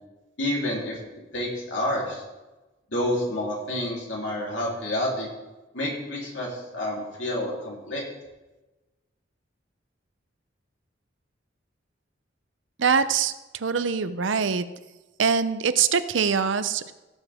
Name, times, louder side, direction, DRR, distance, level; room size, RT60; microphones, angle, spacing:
voice 1, 0.4-1.0 1.3-2.2 2.9-5.3 5.7-8.0, left 1 dB, 70° left, -4 dB, 3.5 m, -29 dB
voice 2, 12.8-14.6 15.2-16.9, right 6 dB, 75° right, 13 dB, 0.6 m, -23 dB
16.5 x 7.0 x 3.6 m, 1.1 s
head